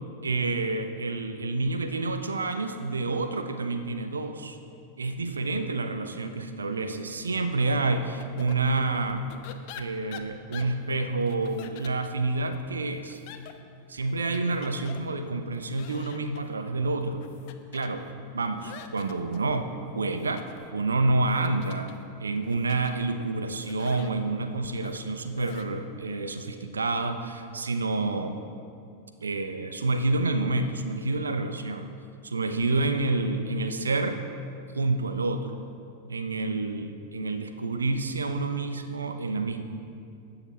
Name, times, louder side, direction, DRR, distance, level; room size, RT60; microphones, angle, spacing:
voice 1, 0.2-4.6 5.0-9.3 9.7-13.2 13.9-17.2 17.7-18.1 18.3-19.7 19.9-20.4 20.7-21.9 22.2-28.4 29.2-31.9 32.2-34.2 34.7-35.6 36.1-39.6, right 3 dB, 75° right, 7 dB, 0.9 m, -28 dB
sound 1, 8.2-25.6, left 8 dB, 45° left, 0.8 m, -49 dB
20.0 x 7.0 x 4.2 m, 2.4 s
figure-of-eight pair, 90°, 0 cm